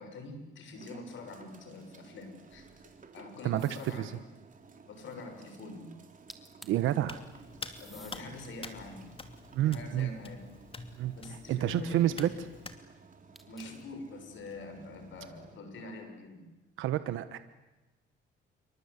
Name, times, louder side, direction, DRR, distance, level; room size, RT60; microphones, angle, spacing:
voice 1, 0.0-2.7 3.1-4.1 4.9-5.9 7.8-9.1 9.6-10.5 11.1-12.3 13.5-16.4, left 2 dB, 70° left, 6 dB, 6.7 m, -44 dB
sound 1, 0.7-15.6, right 4 dB, 40° right, 3.8 m, -56 dB
sound 2, 3.6-4.1 6.0-6.1 6.3-6.9 7.7-8.3 8.9-10.4 13.3-13.9, equal, ahead, 2.9 m, -54 dB
voice 2, 6.6-7.2 9.5-10.1 11.0-11.1 11.5-12.3 16.8-17.4, right 12 dB, 90° right, 12 dB, 1.1 m, -29 dB
Hands, 7.0-12.8, left 3 dB, 25° left, 2.7 m, -47 dB
28.0 x 24.5 x 8.3 m, 1.1 s
cardioid pair, 90°, 20 cm